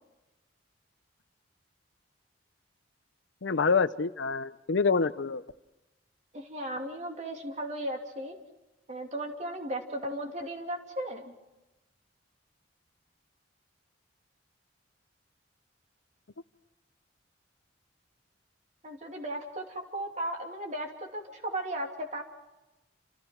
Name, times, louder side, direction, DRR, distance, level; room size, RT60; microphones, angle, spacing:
voice 1, 3.4-5.4, left 4 dB, 80° left, 14 dB, 0.7 m, -26 dB
voice 2, 6.3-8.3 8.9-11.3 18.8-22.2, right 1 dB, 40° right, 2 dB, 2.8 m, -36 dB
28.5 x 27.5 x 4.6 m, 1.0 s
head